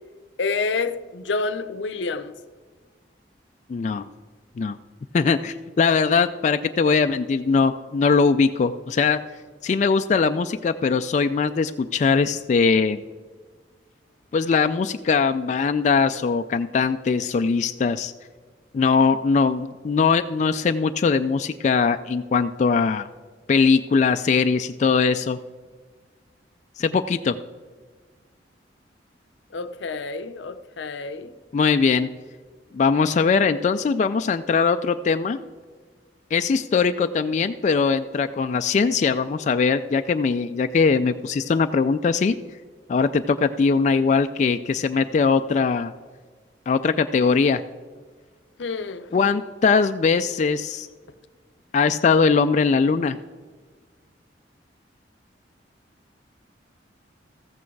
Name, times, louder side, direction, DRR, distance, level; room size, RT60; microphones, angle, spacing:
voice 1, 0.4-2.3 29.5-31.3 48.6-49.1, left 4 dB, 80° left, 0.6 m, -28 dB
voice 2, 3.7-4.1 4.6-4.8 5.1-9.2 9.6-13.0 14.3-18.1 18.7-23.1 23.5-25.4 26.8-27.3 31.5-32.1 32.7-35.4 36.3-42.3 42.9-45.9 46.7-47.6 49.1-50.9 51.7-53.2, left 5 dB, 40° left, 0.3 m, -21 dB
14.0 x 8.5 x 4.6 m
head